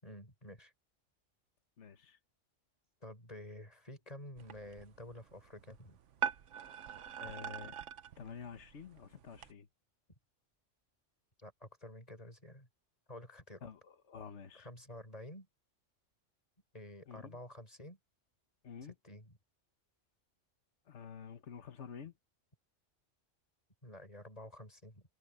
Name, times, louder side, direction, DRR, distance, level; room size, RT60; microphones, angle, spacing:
voice 1, 0.0-0.7 3.0-6.0 11.4-12.7 13.1-13.7 14.5-15.5 16.7-18.0 19.0-19.4 23.8-25.0, left 1 dB, 30° left, 6.6 m, -50 dB
voice 2, 1.8-2.2 7.2-7.8 8.2-9.7 13.6-14.7 17.1-17.4 18.6-18.9 20.9-22.1, left 7 dB, 65° left, 1.6 m, -49 dB
sound 1, 4.4-9.5, right 8 dB, 75° right, 1.2 m, -43 dB
omnidirectional pair, 1.3 m